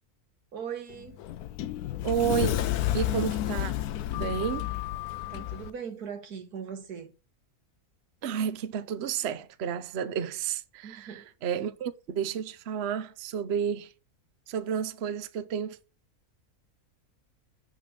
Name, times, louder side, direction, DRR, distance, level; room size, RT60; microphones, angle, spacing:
voice 1, 0.5-1.3 5.3-7.1 10.8-11.3 11.6-11.7, right 7 dB, 90° right, 1.9 m, -40 dB
Sliding door, 0.9-5.7, left 13 dB, 85° left, 1.2 m, -31 dB
voice 2, 2.0-2.5 2.9-3.7 4.1-4.7 8.2-13.9 14.5-15.8, right 8 dB, 55° right, 0.9 m, -31 dB
6.3 x 5.9 x 7.0 m
omnidirectional pair, 1.6 m